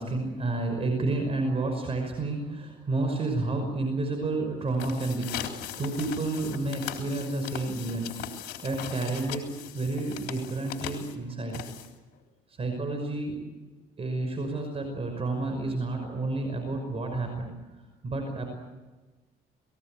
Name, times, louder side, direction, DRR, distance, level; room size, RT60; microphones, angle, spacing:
voice 1, 0.0-8.1 8.6-11.6 12.6-13.4 14.0-17.5 18.0-18.5, right 2 dB, 35° right, 4 dB, 5.8 m, -30 dB
sound 1, 4.6-12.2, left 10 dB, 80° left, 3.6 m, -39 dB
29.5 x 20.0 x 7.9 m, 1.2 s
cardioid pair, 110°, 17 cm